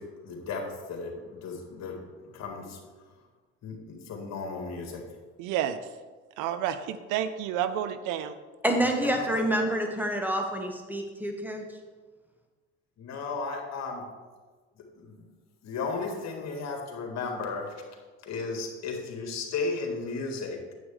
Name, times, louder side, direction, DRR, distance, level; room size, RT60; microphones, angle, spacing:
voice 1, 0.0-2.8 3.6-5.1 9.0-9.6 13.0-14.1 14.8-15.3 15.6-20.7, left 4 dB, 60° left, 2.0 m, -35 dB
voice 2, 5.4-5.8 6.4-8.3, right 10 dB, 75° right, 0.7 m, -30 dB
voice 3, 8.6-11.6, right 1 dB, 5° right, 1.6 m, -27 dB
9.1 x 7.9 x 3.4 m
supercardioid pair, 75°, 31 cm